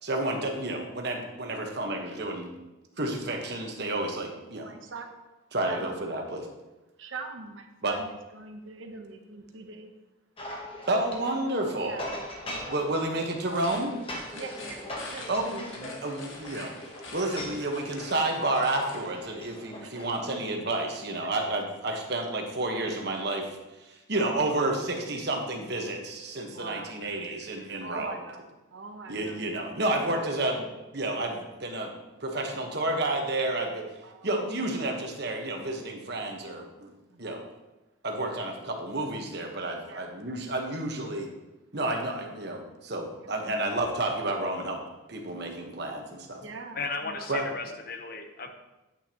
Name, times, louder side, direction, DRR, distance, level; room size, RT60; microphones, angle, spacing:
voice 1, 0.0-2.5 3.0-4.7 5.5-6.5 7.8-8.0 10.9-12.1 12.7-13.9 15.3-16.7 17.1-23.5 23.9-28.1 29.1-31.9 32.2-33.9 34.2-36.9 37.2-37.4 38.0-41.3 41.7-44.8 45.1-46.4 47.3-47.4, right 2 dB, 50° right, 2 dB, 1.2 m, -30 dB
voice 2, 4.6-5.1 5.6-5.9 7.0-9.9 11.8-12.0 12.4-12.7 14.3-14.7 15.1-15.3 19.8-20.0 21.9-22.0 24.1-24.4 26.5-26.9 27.8-28.4 28.7-29.5 30.0-30.3 34.0-34.3 37.1-37.4 39.8-40.0 46.4-47.3, right 4 dB, 70° right, 5 dB, 0.9 m, -43 dB
sound 1, 10.4-20.4, left 1 dB, 25° left, 1.0 m, -41 dB
sound 2, 13.4-19.1, left 2 dB, 75° left, 1.7 m, -45 dB
voice 3, 46.8-48.5, left 4 dB, 45° left, 5 dB, 0.8 m, -35 dB
8.9 x 8.8 x 3.0 m, 1.0 s
head